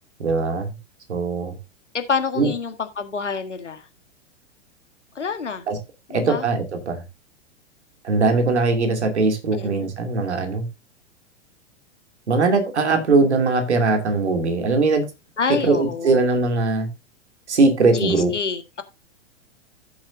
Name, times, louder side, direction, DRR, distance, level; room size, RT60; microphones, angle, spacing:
voice 1, 0.2-0.7 1.1-1.6 2.4-2.5 5.7-5.8 6.1-7.0 8.0-10.7 12.3-15.1 15.6-16.9 17.5-18.3, right 3 dB, 70° right, 2.7 m, -20 dB
voice 2, 1.9-3.9 5.2-5.7 6.1-6.5 9.5-9.9 15.4-16.3 17.9-18.8, left 5 dB, 80° left, 1.8 m, -27 dB
14.5 x 7.3 x 2.7 m
figure-of-eight pair, 105°, 36 cm